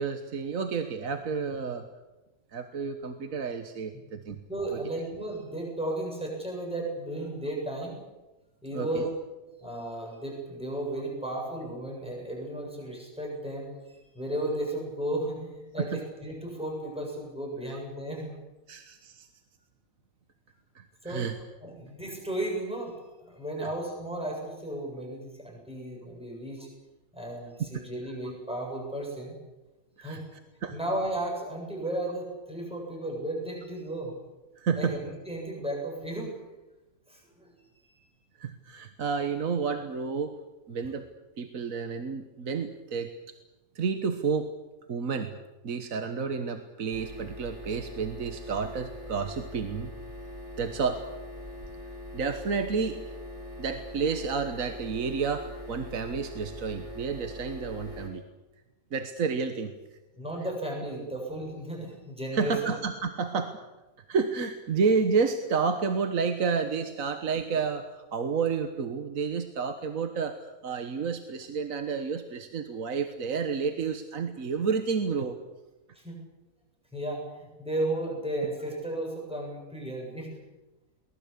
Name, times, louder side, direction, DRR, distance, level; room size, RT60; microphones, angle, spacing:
voice 1, 0.0-1.8 2.5-4.4 8.7-9.1 15.8-16.0 17.7-17.8 18.7-19.3 20.7-21.4 23.6-23.7 30.0-30.2 30.6-30.8 34.6-34.9 38.4-40.4 40.7-41.1 41.4-43.1 43.7-44.5 44.9-45.3 45.6-49.9 50.6-51.0 52.1-53.0 53.6-58.2 58.9-59.7 62.3-63.6 64.1-75.4, right 5 dB, 70° right, 7 dB, 1.7 m, -30 dB
voice 2, 4.5-8.0 8.6-9.1 9.6-18.3 21.0-21.3 21.6-26.7 27.1-29.4 30.0-30.2 30.7-34.1 34.7-36.3 37.1-37.5 60.1-62.7 75.9-76.2 76.9-80.3, right 1 dB, 5° right, -1 dB, 7.7 m, -34 dB
sound 1, 46.9-58.1, left 1 dB, 20° left, 6.5 m, -42 dB
23.0 x 19.5 x 8.4 m, 1.1 s
omnidirectional pair, 1.5 m